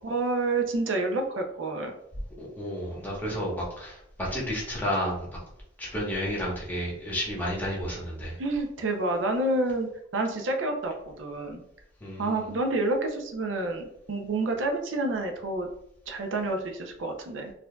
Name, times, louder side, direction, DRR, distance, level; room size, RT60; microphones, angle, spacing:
voice 1, 0.0-1.9 8.4-11.6 12.2-15.7 16.1-17.5, right 2 dB, 90° right, 4 dB, 0.5 m, -29 dB
voice 2, 2.4-5.3 5.8-8.4 12.0-12.4, equal, 10° left, -5 dB, 1.1 m, -31 dB
4.3 x 2.6 x 2.2 m, 0.77 s
head